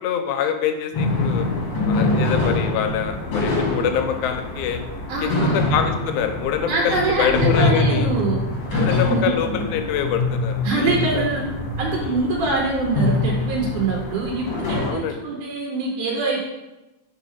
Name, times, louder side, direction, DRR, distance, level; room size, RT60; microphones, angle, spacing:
voice 1, 0.0-1.5 1.9-4.8 5.4-8.1 8.8-11.2 12.0-12.3 14.8-15.2, left 8 dB, 85° left, 6 dB, 2.0 m, -25 dB
sound 1, 0.9-14.9, left 2 dB, 55° left, 1.8 m, -24 dB
voice 2, 5.1-5.6 6.7-8.4 8.7-9.3 10.6-11.5 11.8-16.4, right 3 dB, 80° right, -2 dB, 2.3 m, -24 dB
4.6 x 4.0 x 5.5 m, 1.0 s
omnidirectional pair, 3.6 m